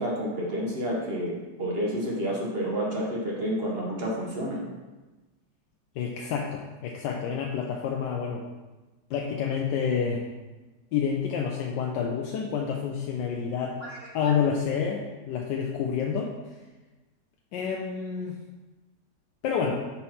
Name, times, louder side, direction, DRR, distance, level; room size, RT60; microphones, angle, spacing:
voice 1, 0.0-4.6 13.8-14.3, equal, 45° right, -3 dB, 0.9 m, -30 dB
voice 2, 6.0-8.4 9.1-10.2 10.9-13.7 14.1-16.3 17.5-18.4 19.4-19.8, left 7 dB, 85° left, -1 dB, 1.3 m, -28 dB
4.4 x 4.3 x 5.5 m, 1.2 s
omnidirectional pair, 1.9 m